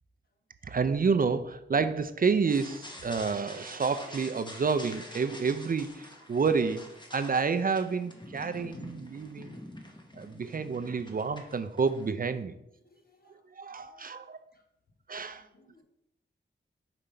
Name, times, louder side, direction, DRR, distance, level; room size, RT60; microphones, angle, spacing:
voice 1, 0.6-6.8 7.1-9.6 10.1-12.5 13.6-14.4 15.1-15.4, right 5 dB, 45° right, 10 dB, 0.4 m, -29 dB
sound 1, 2.5-12.1, left 1 dB, 20° left, 1.0 m, -47 dB
voice 2, 12.8-13.4 13.7-14.1 14.5-14.6 15.2-15.8, equal, 50° left, 3 dB, 1.2 m, -62 dB
5.3 x 5.0 x 4.3 m, 0.81 s
wide cardioid pair, 90°, 20 cm